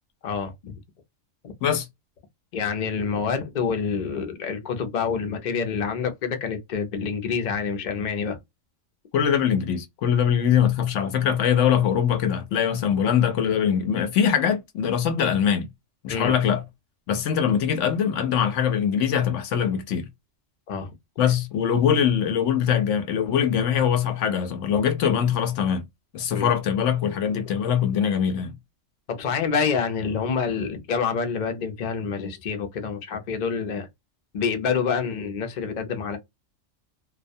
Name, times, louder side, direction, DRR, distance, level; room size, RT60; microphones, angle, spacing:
voice 1, 0.2-0.7 1.4-1.5 2.5-8.4 16.1-16.3 20.7-20.9 26.3-26.5 29.1-33.9 34.3-36.2, left 6 dB, 55° left, 0.5 m, -27 dB
voice 2, 9.1-15.7 16.0-16.6 17.1-20.1 21.2-25.9 26.1-28.6, left 8 dB, 70° left, 0.9 m, -22 dB
2.3 x 2.1 x 2.6 m
omnidirectional pair, 1.3 m